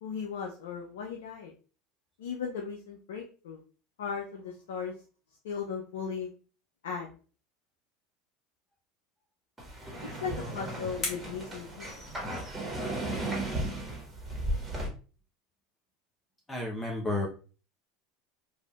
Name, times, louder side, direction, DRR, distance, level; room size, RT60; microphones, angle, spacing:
voice 1, 0.0-1.5 2.2-3.6 4.0-4.9 5.4-6.3 6.8-7.1 10.2-11.9, left 6 dB, 75° left, 1 dB, 0.5 m, -37 dB
sound 1, 9.6-14.9, right 1 dB, 15° right, 1.5 m, -35 dB
sound 2, 10.0-12.6, left 3 dB, 45° left, 1.3 m, -42 dB
voice 2, 16.5-17.3, left 2 dB, 15° left, -1 dB, 0.7 m, -31 dB
3.3 x 2.6 x 2.3 m, 0.37 s
hypercardioid pair, 80°, 0 cm